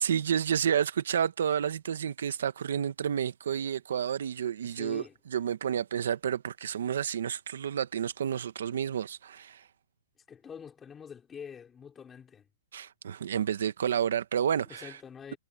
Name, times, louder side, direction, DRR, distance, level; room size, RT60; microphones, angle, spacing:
voice 1, 0.0-5.0 5.3-9.6 12.7-14.9, right 8 dB, 60° right, 1.1 m, -30 dB
voice 2, 4.6-5.2 10.3-12.5 14.7-15.4, left 7 dB, 10° left, 5.3 m, -45 dB
hypercardioid pair, 175°, 0 cm